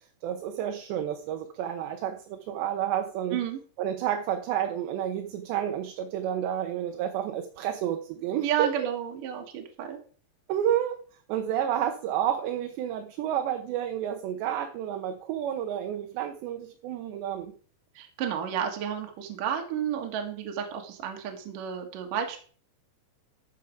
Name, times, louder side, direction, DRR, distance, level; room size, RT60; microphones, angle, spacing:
voice 1, 0.2-3.4 3.8-8.9 10.5-11.0 11.3-17.5, right 10 dB, 75° right, 5 dB, 3.1 m, -30 dB
voice 2, 8.4-10.0 17.9-22.4, right 9 dB, 60° right, 3 dB, 2.6 m, -31 dB
13.5 x 6.4 x 5.1 m, 0.43 s
omnidirectional pair, 5.2 m